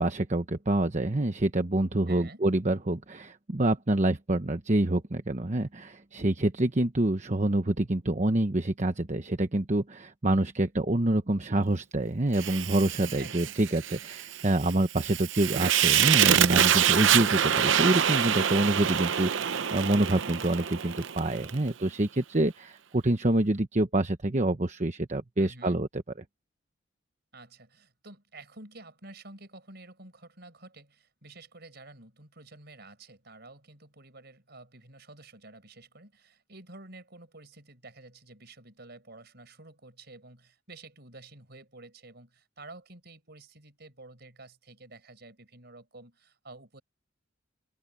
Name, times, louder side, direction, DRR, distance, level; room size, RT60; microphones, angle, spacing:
voice 1, 0.0-25.9, right 1 dB, 35° right, 1.0 m, -27 dB
voice 2, 2.1-2.4 13.2-13.7 25.4-25.8 27.3-46.8, right 2 dB, 55° right, 5.0 m, -50 dB
Fire, 12.4-21.6, right 9 dB, 70° right, 0.7 m, -26 dB
head